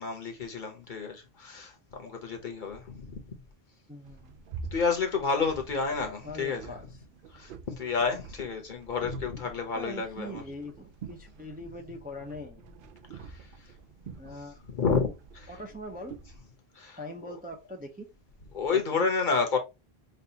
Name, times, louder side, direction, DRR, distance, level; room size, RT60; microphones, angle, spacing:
voice 1, 0.0-3.3 4.7-6.7 7.3-10.4 13.1-13.5 14.0-14.1 14.7-15.5 16.7-17.0 18.5-19.6, left 5 dB, 50° left, 1.0 m, -30 dB
voice 2, 3.9-4.4 6.2-6.9 9.7-12.6 14.2-14.6 15.5-16.2 17.0-18.1 18.7-19.0, left 1 dB, 10° right, 0.4 m, -42 dB
sound 1, 4.0-16.4, right 5 dB, 65° right, 0.7 m, -47 dB
5.4 x 2.4 x 2.8 m
omnidirectional pair, 1.1 m